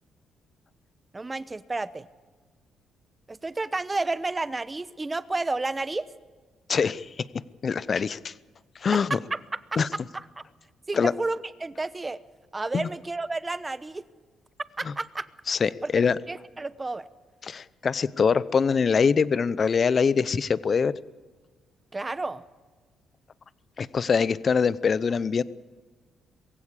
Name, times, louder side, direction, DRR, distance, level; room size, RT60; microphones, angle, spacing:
voice 1, 1.1-2.1 3.3-6.1 9.1-9.8 10.1-10.4 10.9-12.2 12.5-14.1 14.8-15.3 15.8-17.1 21.9-22.4, right 3 dB, 20° right, 15 dB, 1.0 m, -31 dB
voice 2, 6.7-7.1 7.6-8.3 8.8-9.2 9.8-9.9 10.9-11.1 12.7-12.9 14.8-14.9 15.5-16.2 17.4-20.9 23.8-25.4, left 6 dB, 45° left, 17 dB, 0.7 m, -23 dB
22.0 x 16.0 x 8.4 m, 1.4 s
cardioid pair, 90°, 0 cm